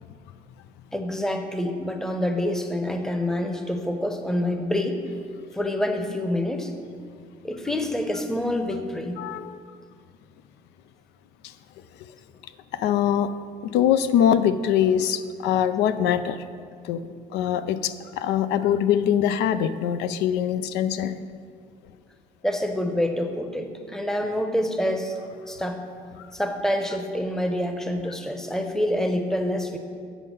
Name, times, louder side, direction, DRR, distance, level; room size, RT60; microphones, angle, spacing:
voice 1, 0.9-5.0 5.5-6.7 7.4-9.2 22.4-25.1 25.5-25.8 26.3-29.8, left 1 dB, 5° left, 5 dB, 0.7 m, -27 dB
voice 2, 9.2-9.6 11.4-11.5 12.7-13.3 13.6-16.4 16.8-21.2, left 9 dB, 90° left, 12 dB, 0.4 m, -23 dB
8.2 x 5.5 x 5.5 m, 2.1 s
cardioid pair, 110°, 17 cm